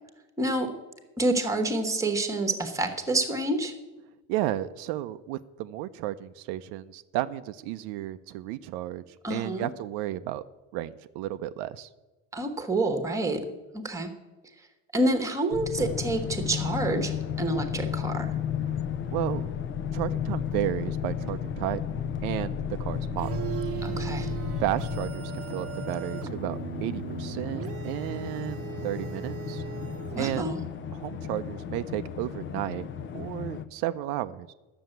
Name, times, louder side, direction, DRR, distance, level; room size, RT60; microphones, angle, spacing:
voice 1, 0.4-0.7 1.2-3.7 9.2-9.7 12.3-13.4 13.7-14.1 14.9-18.3 23.8-24.3 30.1-30.6, right 2 dB, 10° right, 7 dB, 1.2 m, -28 dB
voice 2, 4.3-9.0 9.3-10.4 10.7-11.9 18.7-18.8 19.1-19.5 19.9-21.8 22.2-23.3 24.5-29.6 30.2-30.4 30.9-32.9 33.1-34.5, right 14 dB, 90° right, 11 dB, 0.7 m, -33 dB
sound 1, 15.5-25.2, left 8 dB, 50° left, 0.9 m, -33 dB
sound 2, 15.7-33.7, left 8 dB, 30° left, 0.6 m, -38 dB
sound 3, 23.2-30.7, right 7 dB, 40° right, 0.8 m, -37 dB
11.5 x 7.0 x 9.1 m, 1.1 s
cardioid pair, 160°, 38 cm